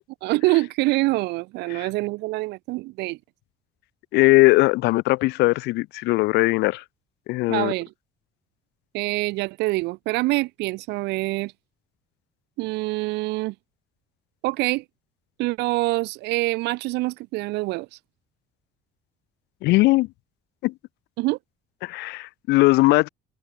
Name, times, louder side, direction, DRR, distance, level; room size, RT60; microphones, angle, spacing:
voice 1, 0.2-3.2 7.5-7.9 8.9-11.5 12.6-13.5 14.4-14.8 15.4-17.9 21.2-21.4, right 22 dB, 85° right, 0.4 m, -25 dB
voice 2, 4.1-6.8 7.3-7.7 19.6-20.1 20.6-20.7 21.8-23.1, left 21 dB, 80° left, 0.5 m, -19 dB
cardioid pair, 110°, 17 cm